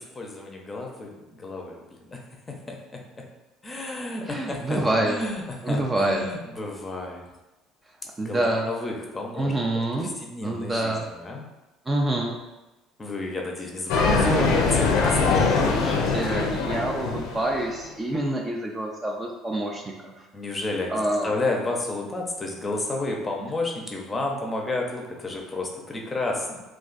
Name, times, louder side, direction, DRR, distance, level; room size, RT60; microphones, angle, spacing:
voice 1, 0.1-1.8 2.1-2.2 2.5-2.8 3.6-7.3 8.2-9.5 9.9-11.5 13.0-15.7 20.3-26.6, left 2 dB, 20° left, 0 dB, 0.6 m, -31 dB
voice 2, 4.2-5.2 5.6-6.2 8.2-8.6 9.3-10.1 10.4-11.1 11.9-12.4 14.2-14.8 15.7-20.1 20.9-21.3, right 1 dB, 20° right, 0 dB, 0.4 m, -27 dB
sound 1, 13.9-17.8, left 4 dB, 70° left, 0.4 m, -23 dB
2.4 x 2.4 x 3.9 m, 1.1 s
supercardioid pair, 100°, 0 cm